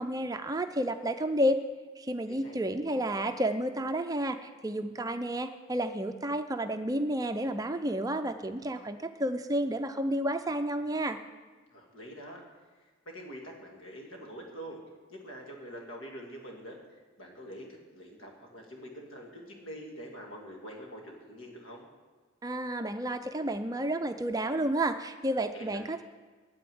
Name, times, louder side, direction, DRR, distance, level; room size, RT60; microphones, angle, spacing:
voice 1, 0.0-1.6 2.0-11.2 22.4-26.0, right 1 dB, 15° right, 8 dB, 0.4 m, -31 dB
voice 2, 2.3-2.6 11.7-12.4 12.7-14.8 15.1-21.9 25.5-25.8, equal, 80° left, 0 dB, 2.5 m, -45 dB
9.3 x 7.8 x 9.3 m, 1.4 s
head